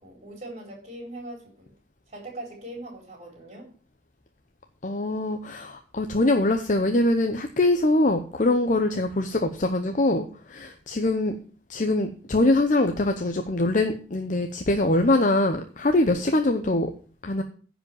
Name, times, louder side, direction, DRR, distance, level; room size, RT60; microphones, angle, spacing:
voice 1, 0.0-1.7 2.1-3.7, right 1 dB, 35° right, 0 dB, 4.2 m, -40 dB
voice 2, 4.8-11.4 11.7-16.9 17.2-17.4, left 2 dB, 40° left, 6 dB, 0.8 m, -23 dB
10.0 x 5.1 x 7.2 m, 0.41 s
head